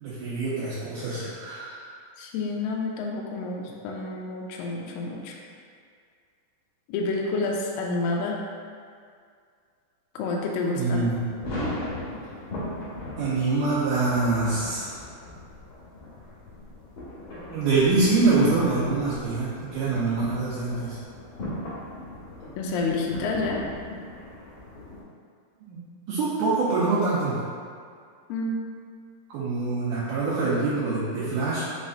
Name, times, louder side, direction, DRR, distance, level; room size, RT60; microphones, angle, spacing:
voice 1, 0.0-1.8 10.7-11.3 13.2-14.9 17.5-21.0 25.7-25.8 26.1-27.4 29.3-31.7, right 3 dB, 80° right, -10 dB, 1.9 m, -25 dB
voice 2, 2.2-5.4 6.9-8.4 10.2-11.0 22.6-23.6 28.3-28.6, left 3 dB, 80° left, -1 dB, 2.1 m, -29 dB
sound 1, 10.9-25.0, left 1 dB, 50° left, 1.7 m, -38 dB
5.7 x 3.2 x 2.7 m, 2.2 s
omnidirectional pair, 4.4 m